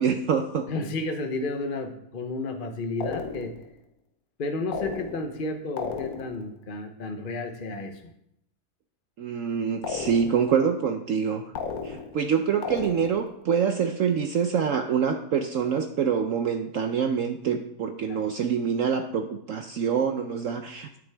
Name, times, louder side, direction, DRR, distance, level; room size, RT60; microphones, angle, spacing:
voice 1, 0.0-0.7 9.2-11.4 11.8-21.0, right 7 dB, 65° right, 6 dB, 0.9 m, -26 dB
voice 2, 0.7-3.5 4.4-8.0 18.1-18.2, left 2 dB, 40° left, 5 dB, 0.8 m, -32 dB
sound 1, 3.0-3.7 4.7-5.4 5.8-6.5 9.8-10.6 11.5-12.3 12.6-13.4, left 5 dB, 65° left, 1.3 m, -34 dB
9.6 x 9.0 x 3.4 m, 0.76 s
omnidirectional pair, 1.8 m